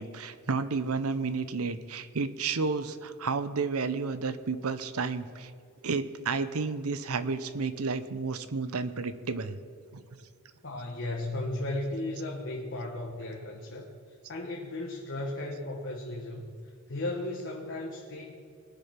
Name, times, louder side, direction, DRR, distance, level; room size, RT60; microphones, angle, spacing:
voice 1, 0.0-5.5 5.8-9.6 9.9-10.0, right 4 dB, 85° right, 12 dB, 0.8 m, -31 dB
voice 2, 10.6-13.9 14.3-16.5 16.9-18.3, left 2 dB, 60° left, -1 dB, 1.4 m, -35 dB
21.0 x 7.0 x 5.9 m, 2.3 s
head